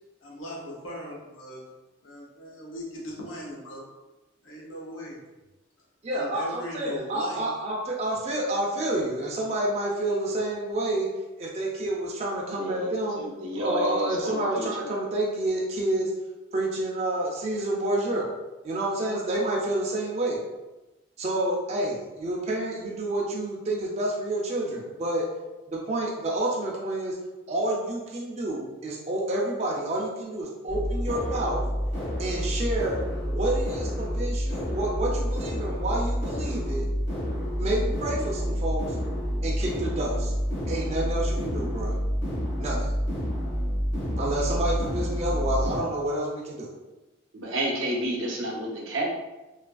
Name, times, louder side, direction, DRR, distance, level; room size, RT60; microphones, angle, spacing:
voice 1, 0.2-1.6 2.0-3.8 4.4-5.2 6.1-7.4, equal, 75° left, -3 dB, 0.8 m, -38 dB
voice 2, 6.0-11.1 11.4-13.2 13.6-16.1 16.5-18.2 18.6-20.4 21.2-25.3 25.7-27.2 27.5-31.6 32.2-33.0 33.2-36.9 37.6-39.0 39.4-40.3 40.7-41.9 42.6-42.9 44.2-46.7, right 1 dB, 30° right, -3 dB, 0.4 m, -29 dB
voice 3, 12.5-14.9 47.3-49.1, right 1 dB, 80° right, -1 dB, 0.6 m, -31 dB
sound 1, 30.7-45.8, equal, 40° left, 0.7 m, -28 dB
2.7 x 2.4 x 2.3 m, 1.1 s
head